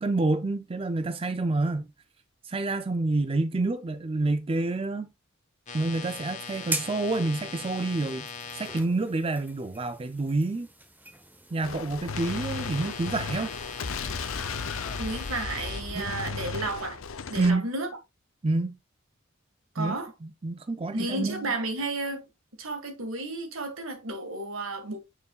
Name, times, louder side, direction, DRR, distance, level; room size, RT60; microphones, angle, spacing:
voice 1, 0.0-1.9 2.4-5.1 5.7-8.3 8.5-10.7 11.5-13.5 15.9-16.1 17.4-17.7 18.4-18.7 19.8-21.5, right 2 dB, 30° right, 0.5 m, -28 dB
sound 1, 5.7-8.8 12.2-15.8, left 6 dB, 35° left, 1.0 m, -40 dB
sound 2, 6.5-15.5, right 2 dB, 10° right, 1.0 m, -42 dB
Gunshot gunfire, 11.6-17.5, left 4 dB, 75° left, 0.6 m, -35 dB
voice 2, 15.0-17.0 17.3-17.9 19.8-20.1 20.9-22.2 22.6-25.0, right 2 dB, 75° right, 1.8 m, -32 dB
9.5 x 4.7 x 2.4 m
head